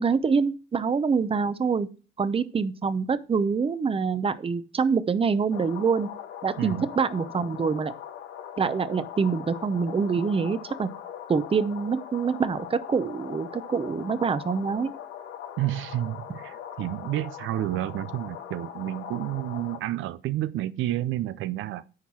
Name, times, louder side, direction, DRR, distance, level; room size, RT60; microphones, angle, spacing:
voice 1, 0.0-1.9 2.2-6.1 6.4-7.9 8.6-10.9 11.3-14.9, right 5 dB, 30° right, 0.7 m, -25 dB
sound 1, 5.5-19.8, left 9 dB, 90° left, 1.0 m, -41 dB
voice 2, 6.6-6.9 15.6-21.8, right 14 dB, 80° right, 0.5 m, -30 dB
9.5 x 4.5 x 4.7 m
cardioid pair, 90°, 20 cm